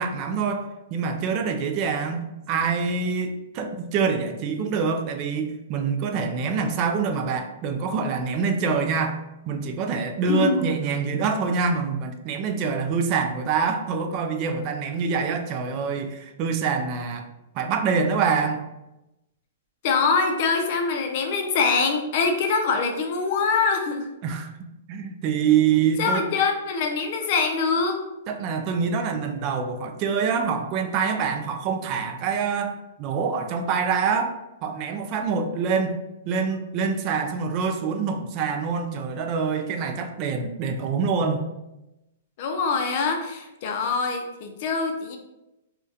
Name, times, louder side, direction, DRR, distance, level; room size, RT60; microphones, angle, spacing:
voice 1, 0.0-9.2 9.5-17.3 17.5-18.6 24.2-26.2 28.3-34.3 34.6-36.0 36.3-41.5, right 5 dB, 40° right, 5 dB, 0.3 m, -25 dB
voice 2, 10.3-10.7 19.8-24.1 26.0-28.0 42.4-45.2, left 4 dB, 50° left, 4 dB, 0.4 m, -24 dB
2.2 x 2.2 x 2.6 m, 0.94 s
hypercardioid pair, 130°, 0 cm